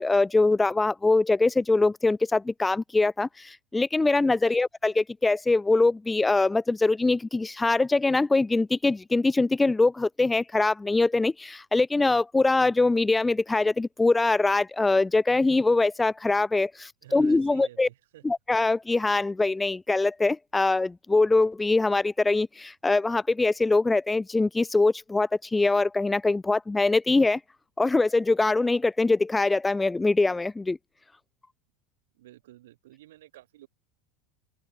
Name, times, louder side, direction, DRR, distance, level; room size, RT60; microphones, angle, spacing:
voice 1, 0.0-17.9 18.2-27.4 27.8-30.8, left 3 dB, 10° left, 0.6 m, -23 dB
voice 2, 16.8-18.2 32.1-33.7, right 15 dB, 90° right, 5.3 m, -51 dB
open air
supercardioid pair, 120°, 0 cm